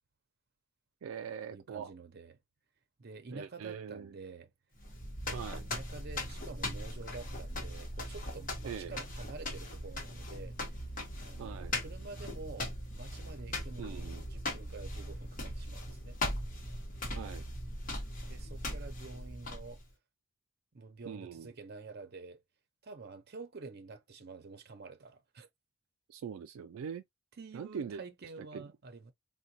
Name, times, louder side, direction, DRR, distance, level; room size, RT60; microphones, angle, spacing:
voice 1, 1.0-1.9 3.3-4.2 5.3-5.6 8.6-9.0 11.4-11.7 13.8-14.2 17.1-17.5 21.1-21.5 26.1-27.0 27.5-28.0 28.5-28.7, right 7 dB, 85° right, 0.3 m, -42 dB
voice 2, 1.5-2.4 3.0-4.5 5.6-10.8 11.2-16.2 18.3-19.8 20.7-22.4 22.8-25.5 27.4-29.1, right 4 dB, 50° right, 0.7 m, -49 dB
sound 1, 4.8-19.9, left 1 dB, 40° left, 1.0 m, -39 dB
3.8 x 2.2 x 2.6 m
head